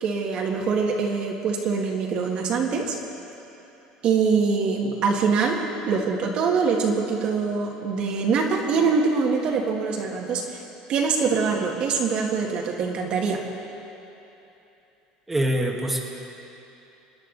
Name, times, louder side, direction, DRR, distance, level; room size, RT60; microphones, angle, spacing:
voice 1, 0.0-3.0 4.0-5.6 5.9-10.6 10.9-13.4, right 5 dB, 50° right, 0 dB, 1.7 m, -24 dB
voice 2, 15.3-16.0, right 1 dB, 10° right, -2 dB, 1.6 m, -24 dB
27.5 x 10.5 x 4.0 m, 2.9 s
cardioid pair, 135°, 2 cm